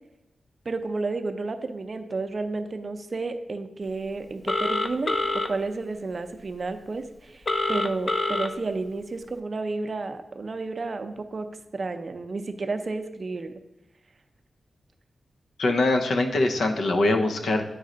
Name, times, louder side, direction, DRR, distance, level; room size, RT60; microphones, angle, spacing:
voice 1, 0.7-5.1 5.5-11.5 11.7-13.5, right 3 dB, 50° right, 8 dB, 0.5 m, -31 dB
Telephone, 4.5-5.5 7.5-8.5, left 2 dB, 40° left, 0.5 m, -25 dB
voice 2, 15.6-17.6, left 2 dB, 80° left, 4 dB, 0.7 m, -23 dB
9.2 x 3.2 x 3.8 m, 0.92 s
wide cardioid pair, 85°, 0 cm